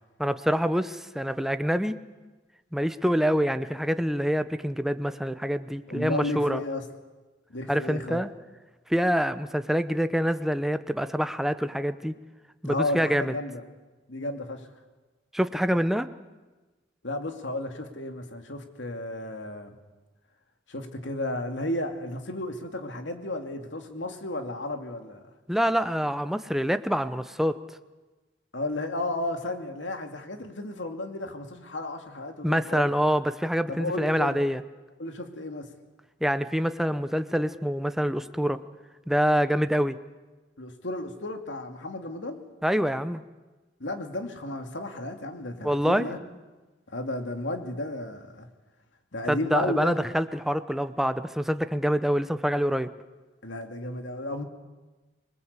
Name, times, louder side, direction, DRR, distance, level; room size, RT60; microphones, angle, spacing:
voice 1, 0.2-2.0 2.7-6.6 7.7-8.3 8.9-12.1 12.6-13.3 15.3-16.1 25.5-27.5 32.4-34.6 36.2-38.6 39.1-40.0 42.6-43.2 45.6-46.0 49.3-52.9, equal, ahead, 10 dB, 0.8 m, -26 dB
voice 2, 5.9-6.9 7.5-8.2 12.6-13.6 14.1-14.7 17.0-19.8 20.7-25.2 28.5-32.9 33.7-34.4 35.0-35.7 40.6-42.4 43.8-46.2 46.9-48.5 49.1-50.0 53.4-54.4, left 2 dB, 85° left, 5 dB, 2.6 m, -33 dB
26.0 x 21.0 x 8.3 m, 1.2 s
head